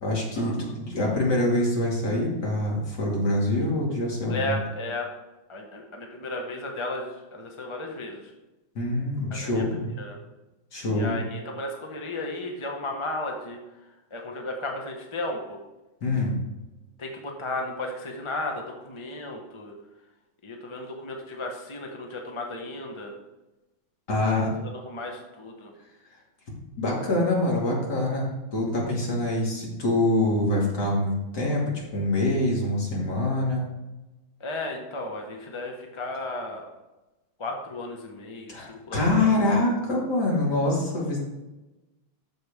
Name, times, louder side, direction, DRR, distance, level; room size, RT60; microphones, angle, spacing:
voice 1, 0.0-4.6 8.7-9.9 10.7-11.2 16.0-16.4 24.1-24.5 26.8-33.7 38.5-41.2, left 1 dB, 55° left, -3 dB, 2.9 m, -25 dB
voice 2, 4.3-5.1 5.5-8.3 9.3-9.6 10.0-10.2 10.9-13.6 14.1-15.6 17.0-19.8 20.4-23.1 24.2-25.7 34.4-36.7 37.4-39.3, left 2 dB, 20° left, 1 dB, 0.7 m, -34 dB
14.0 x 5.1 x 3.6 m, 1.0 s
omnidirectional pair, 2.2 m